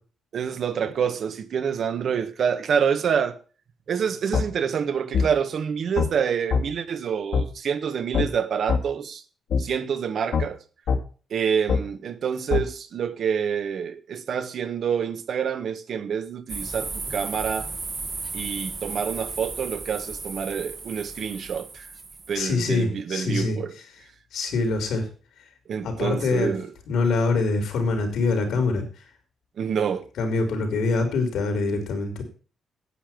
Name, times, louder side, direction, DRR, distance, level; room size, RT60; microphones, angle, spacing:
voice 1, 0.3-3.4 3.9-9.2 9.6-10.6 11.3-17.7 18.3-21.9 22.3-23.7 25.7-26.7 29.6-30.1, right 7 dB, 55° right, 1.3 m, -27 dB
sound 1, 4.3-4.5 5.1-5.3 6.0-6.1 6.5-6.6 7.3-7.5 8.1-8.3 8.7-8.8 9.5-9.6 10.3-10.5 10.9-11.0 11.7-11.8 12.5-12.6, left 5 dB, 65° left, 2.1 m, -22 dB
sound 2, 16.5-22.4, right 3 dB, 30° right, 1.3 m, -35 dB
voice 2, 22.3-23.6 24.3-25.1 25.8-26.5 26.9-28.8 30.2-32.2, left 3 dB, 80° left, 4.1 m, -24 dB
10.0 x 8.9 x 6.0 m
wide cardioid pair, 160°, 0 cm